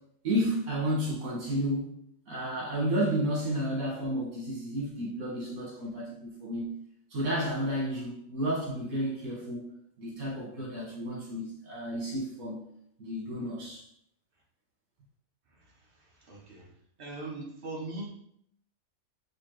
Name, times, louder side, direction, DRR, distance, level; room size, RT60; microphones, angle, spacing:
voice 1, 0.2-1.9 2.3-6.7 7.1-9.7 10.0-12.6 13.0-13.8, equal, 75° right, -4 dB, 1.8 m, -31 dB
voice 2, 15.5-16.7 17.0-18.1, right 2 dB, 50° right, -1 dB, 0.8 m, -41 dB
4.3 x 2.6 x 3.0 m, 0.70 s
omnidirectional pair, 1.5 m